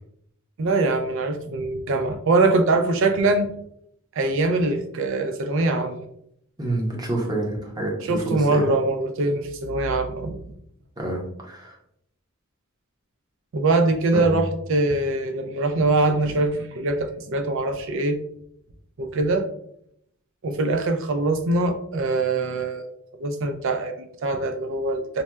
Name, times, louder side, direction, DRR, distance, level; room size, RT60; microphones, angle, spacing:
voice 1, 0.6-3.5 4.1-6.1 8.0-10.5 13.5-18.2 19.0-19.5 20.4-22.9 23.2-25.2, right 2 dB, 65° right, 7 dB, 0.4 m, -23 dB
voice 2, 6.6-8.7 11.0-11.8 14.1-14.4, right 1 dB, 20° right, -1 dB, 0.6 m, -28 dB
4.1 x 2.1 x 2.2 m, 0.72 s
head